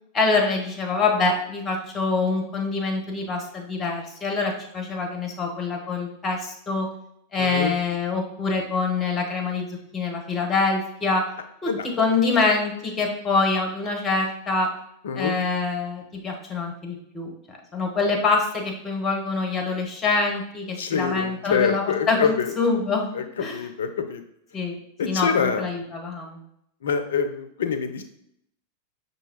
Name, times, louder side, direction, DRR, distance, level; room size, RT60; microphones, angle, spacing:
voice 1, 0.1-6.9 7.3-11.2 11.6-14.7 15.1-17.3 17.7-23.7 24.5-24.8 25.0-26.4, left 4 dB, 20° left, 2 dB, 1.0 m, -25 dB
voice 2, 7.4-7.8 11.7-11.9 15.0-15.4 20.8-22.5 23.1-23.2 23.5-24.2 25.0-25.6 26.8-28.0, left 6 dB, 65° left, 8 dB, 0.4 m, -25 dB
5.4 x 2.7 x 2.9 m, 0.74 s
figure-of-eight pair, 90°, 0 cm